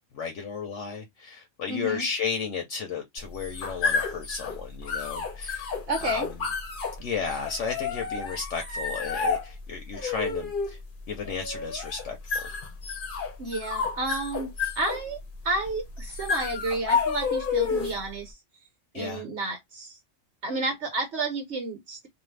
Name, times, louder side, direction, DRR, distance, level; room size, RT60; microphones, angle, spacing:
voice 1, 0.1-5.7 6.0-6.3 7.0-10.8 11.1-12.5 18.9-19.2, left 6 dB, 70° left, 1.0 m, -33 dB
voice 2, 1.7-2.1 5.9-6.3 13.4-18.4 18.9-20.0 20.4-22.1, right 2 dB, 60° right, 1.1 m, -31 dB
sound 1, 3.2-18.1, left 5 dB, 45° left, 0.8 m, -31 dB
2.6 x 2.3 x 3.1 m
omnidirectional pair, 1.4 m